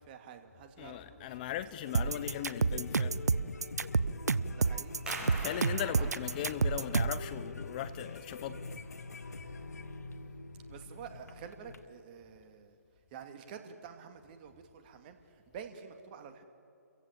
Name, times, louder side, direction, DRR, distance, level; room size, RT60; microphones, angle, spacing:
voice 1, 0.0-1.6 2.0-2.1 4.5-6.9 10.7-12.8 13.1-16.4, right 7 dB, 35° right, 2.2 m, -50 dB
voice 2, 0.8-3.2 5.2-8.7, left 11 dB, 30° left, 0.8 m, -39 dB
sound 1, 1.9-11.9, left 3 dB, 75° left, 1.3 m, -45 dB
sound 2, 1.9-7.3, right 4 dB, 75° right, 0.7 m, -29 dB
sound 3, 5.1-10.4, right 2 dB, 10° right, 6.3 m, -47 dB
29.0 x 15.5 x 8.9 m
figure-of-eight pair, 140°, 9 cm